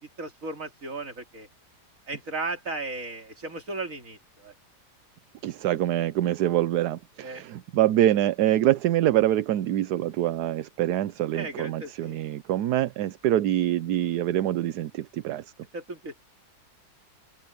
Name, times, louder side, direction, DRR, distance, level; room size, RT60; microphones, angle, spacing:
voice 1, 0.2-1.5 2.1-4.5 7.2-7.4 11.3-12.1 15.7-16.2, right 3 dB, 50° right, 3.3 m, -35 dB
voice 2, 5.4-15.5, right 13 dB, 75° right, 1.2 m, -25 dB
open air
omnidirectional pair, 1.8 m